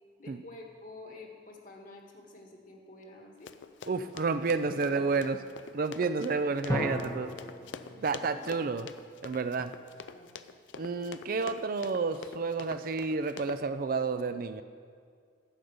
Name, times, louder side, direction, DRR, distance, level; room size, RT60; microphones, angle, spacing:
voice 1, 0.2-3.5 4.5-5.3 8.2-8.6 10.1-10.3, left 2 dB, 50° left, 1 dB, 1.5 m, -49 dB
Run, 3.5-13.6, left 5 dB, 80° left, 0.5 m, -46 dB
voice 2, 3.9-5.4 5.7-7.3 8.0-8.9 9.2-9.7 10.8-14.6, right 4 dB, 50° right, 10 dB, 0.4 m, -30 dB
sound 1, 6.7-9.4, left 1 dB, 15° left, 0.8 m, -37 dB
11.5 x 5.3 x 7.9 m, 2.1 s
head